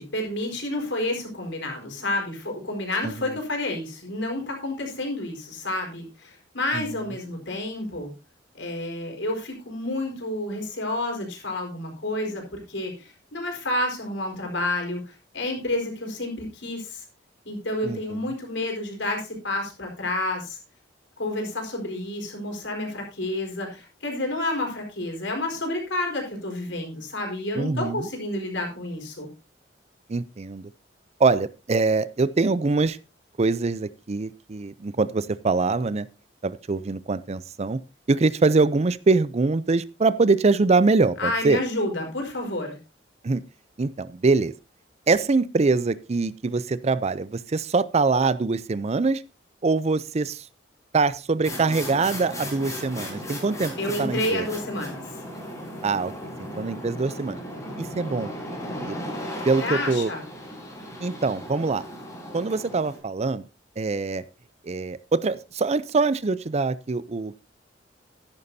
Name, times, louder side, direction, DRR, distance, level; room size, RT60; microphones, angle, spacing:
voice 1, 0.0-8.1 8.6-17.0 17.4-20.6 21.2-29.3 41.2-42.8 53.8-55.0 59.6-60.2, left 1 dB, 80° left, 2 dB, 4.4 m, -30 dB
voice 2, 3.0-3.4 6.7-7.1 17.8-18.3 27.6-28.1 30.1-30.7 31.2-33.0 33.4-36.1 36.4-37.8 38.1-41.6 43.2-43.4 43.8-44.5 45.1-49.2 49.6-50.4 50.9-53.7 54.0-54.5 55.8-56.1 56.5-57.4 57.8-58.3 58.8-59.0 59.4-60.1 61.0-61.8 62.3-63.4 63.8-64.2 64.6-67.4, right 3 dB, 35° right, 16 dB, 0.5 m, -23 dB
sound 1, 51.4-63.0, left 1 dB, 20° left, 4.3 m, -36 dB
14.0 x 10.5 x 2.7 m, 0.30 s
head